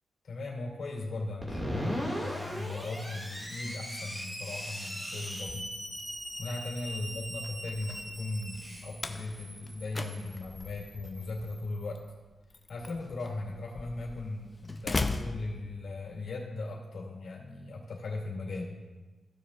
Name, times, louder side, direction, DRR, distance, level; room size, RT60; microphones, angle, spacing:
voice 1, 0.2-5.7 6.4-12.0 12.7-18.8, left 2 dB, 65° left, -2 dB, 2.5 m, -38 dB
Screech, 1.4-11.9, equal, 15° right, 2.1 m, -39 dB
Slam, 5.3-16.2, left 3 dB, 25° left, 0.5 m, -40 dB
15.5 x 6.9 x 2.5 m, 1.2 s
wide cardioid pair, 145°, 0 cm